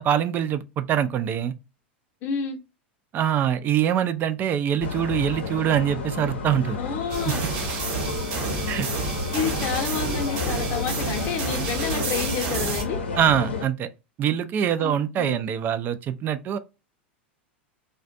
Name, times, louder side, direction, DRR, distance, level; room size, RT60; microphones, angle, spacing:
voice 1, 0.0-1.5 3.1-6.8 7.3-7.4 8.7-8.9 13.2-13.9 14.2-16.6, right 9 dB, 35° right, 0.3 m, -24 dB
voice 2, 2.2-2.6 6.8-7.4 9.3-13.0 14.8-15.5, left 6 dB, 40° left, 0.7 m, -30 dB
sound 1, 4.8-13.6, left 4 dB, 80° left, 0.6 m, -31 dB
sound 2, 7.1-12.8, right 5 dB, 50° right, 0.9 m, -30 dB
2.4 x 2.2 x 2.5 m
figure-of-eight pair, 90°, 6 cm